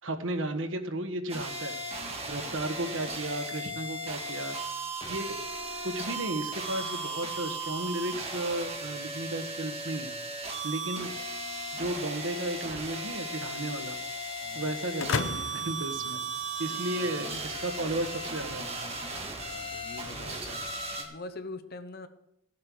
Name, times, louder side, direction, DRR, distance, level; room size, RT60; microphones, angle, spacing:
voice 1, 0.0-1.8 2.3-4.6 5.0-5.4 5.8-10.1 10.6-11.1 11.7-14.0 14.5-16.2 16.6-18.8, right 1 dB, 75° right, 7 dB, 1.3 m, -34 dB
sound 1, 1.3-21.0, right 2 dB, 30° right, 2.0 m, -36 dB
voice 2, 14.4-14.7 19.3-20.6 21.0-22.1, left 2 dB, 50° left, 10 dB, 0.9 m, -43 dB
sound 2, 15.0-16.9, left 5 dB, 85° left, 0.6 m, -34 dB
15.0 x 7.5 x 6.2 m, 0.83 s
head